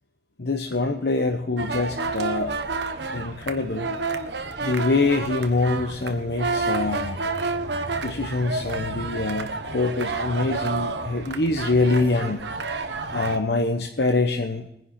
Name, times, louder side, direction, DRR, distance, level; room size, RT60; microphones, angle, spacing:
voice 1, 0.4-2.6 3.1-3.9 4.6-7.2 8.0-12.4 13.1-14.7, left 3 dB, 70° left, 4 dB, 1.0 m, -24 dB
sound 1, 1.6-13.4, right 3 dB, 80° right, 1.1 m, -30 dB
21.5 x 10.5 x 4.3 m, 0.83 s
head